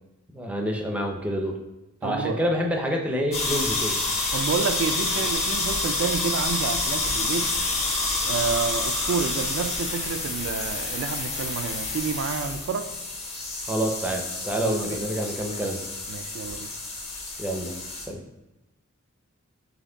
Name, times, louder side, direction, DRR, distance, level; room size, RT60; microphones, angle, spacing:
voice 1, 0.3-1.6 2.0-4.0 13.6-15.8 17.4-17.7 18.1-18.2, equal, 5° right, 2 dB, 0.5 m, -27 dB
voice 2, 2.0-2.4 4.3-7.5 8.3-12.9 14.6-15.0 16.1-16.7, right 5 dB, 65° right, 7 dB, 0.3 m, -29 dB
sound 1, 3.3-18.1, left 2 dB, 30° left, 1.0 m, -28 dB
4.2 x 2.9 x 3.8 m, 1.0 s
head